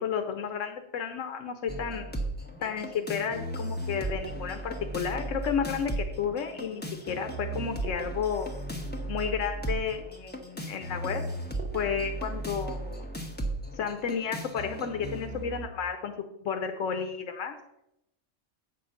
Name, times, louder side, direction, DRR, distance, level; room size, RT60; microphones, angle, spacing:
voice 1, 0.0-2.1 2.6-8.5 9.1-11.2 11.7-13.0 13.8-16.1 16.4-17.5, left 7 dB, 85° left, 7 dB, 1.1 m, -32 dB
sound 1, 1.7-15.7, right 2 dB, 10° left, 0.8 m, -36 dB
8.4 x 4.4 x 6.4 m, 0.83 s
omnidirectional pair, 1.3 m